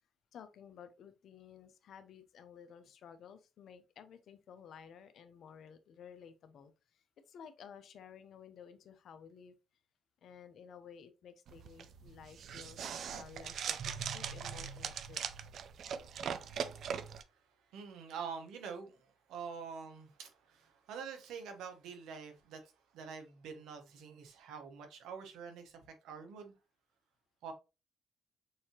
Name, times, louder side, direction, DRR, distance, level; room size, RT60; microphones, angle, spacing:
voice 1, 0.3-9.5 10.2-15.2, left 7 dB, 65° left, 0.8 m, -54 dB
sound 1, 11.5-17.2, right 7 dB, 65° right, 0.5 m, -41 dB
voice 2, 17.7-26.5 27.4-27.5, right 6 dB, 90° right, 1.2 m, -46 dB
6.3 x 2.9 x 3.0 m
cardioid pair, 90°, 0 cm